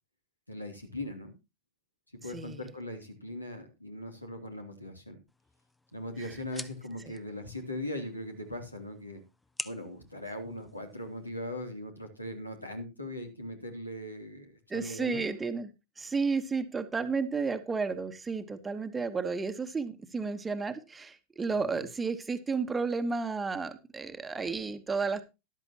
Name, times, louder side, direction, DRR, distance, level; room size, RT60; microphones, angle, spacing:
voice 1, 0.5-1.3 2.2-5.2 5.9-9.2 9.6-15.2 21.5-21.8, left 1 dB, 85° left, 5 dB, 2.9 m, -40 dB
voice 2, 2.3-2.7 6.2-6.3 14.7-15.7 16.0-25.2, right 4 dB, 15° right, 9 dB, 1.2 m, -32 dB
sound 1, 5.3-11.3, left 2 dB, 10° left, 0.7 m, -48 dB
13.5 x 12.0 x 2.9 m, 0.26 s
figure-of-eight pair, 90°, 0 cm